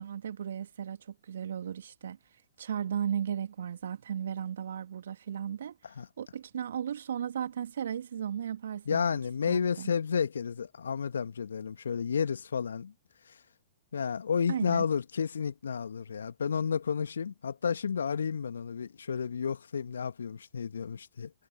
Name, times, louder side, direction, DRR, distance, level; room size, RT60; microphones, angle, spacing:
voice 1, 0.0-2.2 2.6-5.8 6.2-9.2 9.5-9.9 14.5-14.9, right 9 dB, 65° right, 2.1 m, -35 dB
voice 2, 8.9-12.9 13.9-21.3, left 6 dB, 70° left, 2.1 m, -31 dB
figure-of-eight pair, 105°, 0 cm